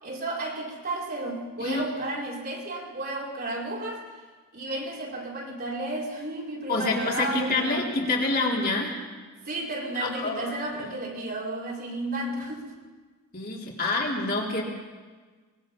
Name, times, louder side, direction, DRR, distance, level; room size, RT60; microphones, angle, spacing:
voice 1, 0.0-4.0 4.5-7.9 9.4-12.7 13.8-13.9, right 2 dB, 45° right, -3 dB, 4.9 m, -32 dB
voice 2, 1.6-2.1 6.7-8.9 10.0-10.5 10.8-10.9 13.3-14.6, left 2 dB, 45° left, -3 dB, 4.0 m, -27 dB
23.5 x 21.5 x 5.5 m, 1.4 s
head